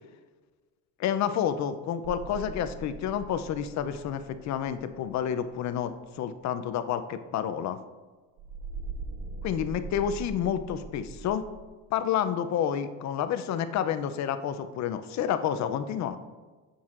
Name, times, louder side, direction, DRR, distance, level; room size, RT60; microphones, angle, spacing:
voice 1, 1.0-7.8 9.4-11.4 11.9-16.2, left 9 dB, 45° left, 11 dB, 0.5 m, -29 dB
sound 1, 2.0-5.6 8.4-11.7, right 3 dB, 50° right, 0.5 m, -41 dB
6.9 x 6.3 x 2.5 m, 1.3 s
supercardioid pair, 105°, 38 cm